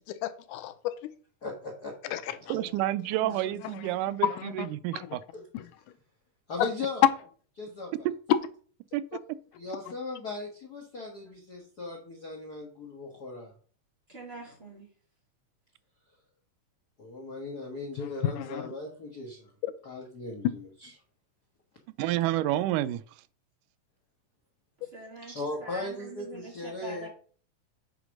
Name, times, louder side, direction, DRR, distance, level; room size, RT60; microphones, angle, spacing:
voice 1, 0.1-1.1 2.1-2.2 4.2-4.7 5.0-5.1 5.5-5.7 6.6-6.7 18.0-18.7 19.6-19.7, left 12 dB, 85° left, 2.1 m, -32 dB
voice 2, 1.4-2.8 3.2-3.5 5.3-5.4 6.5-7.0 7.6-8.1 9.6-13.5 17.0-19.5 19.8-20.9 25.3-27.1, left 2 dB, 50° left, 1.2 m, -38 dB
voice 3, 2.5-5.2 8.0-8.1 8.9-9.2 22.0-23.0, right 14 dB, 85° right, 2.1 m, -29 dB
voice 4, 14.1-14.9 24.8-27.1, right 2 dB, 20° right, 2.8 m, -44 dB
8.2 x 4.1 x 6.2 m
omnidirectional pair, 3.6 m